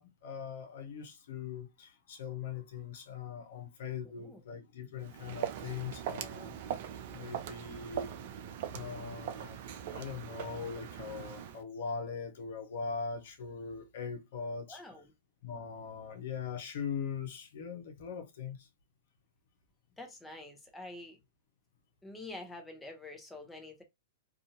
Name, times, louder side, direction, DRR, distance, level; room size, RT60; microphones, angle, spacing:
voice 1, 0.0-6.5 7.1-8.1 8.7-9.6 9.9-14.8 15.4-18.7, left 6 dB, 65° left, 0.8 m, -41 dB
voice 2, 4.0-4.4 14.7-15.1 20.0-21.2 22.0-23.8, left 2 dB, 10° left, 0.9 m, -47 dB
Walk footsteps, 5.0-11.6, right 9 dB, 55° right, 0.4 m, -41 dB
2.6 x 2.4 x 2.8 m
hypercardioid pair, 105°, 0 cm